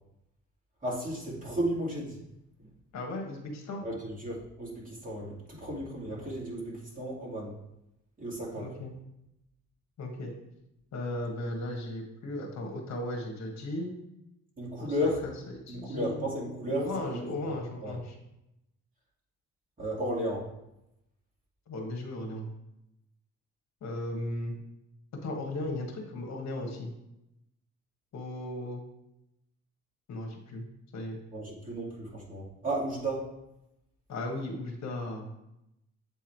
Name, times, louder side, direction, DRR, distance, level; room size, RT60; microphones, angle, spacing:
voice 1, 0.8-2.2 2.6-2.7 3.8-7.6 8.2-8.7 14.6-15.3 15.7-17.3 17.8-18.0 19.8-20.5 31.3-33.2, equal, 25° right, -4 dB, 2.5 m, -34 dB
voice 2, 2.9-3.8 8.6-9.0 10.0-10.3 10.9-13.9 14.8-16.2 16.8-18.1 21.7-22.5 23.8-24.6 25.2-26.9 28.1-28.8 30.1-30.6 30.9-31.2 34.1-35.3, left 1 dB, 65° left, 2 dB, 1.3 m, -36 dB
7.9 x 3.6 x 4.5 m, 0.86 s
cardioid pair, 90°, 30 cm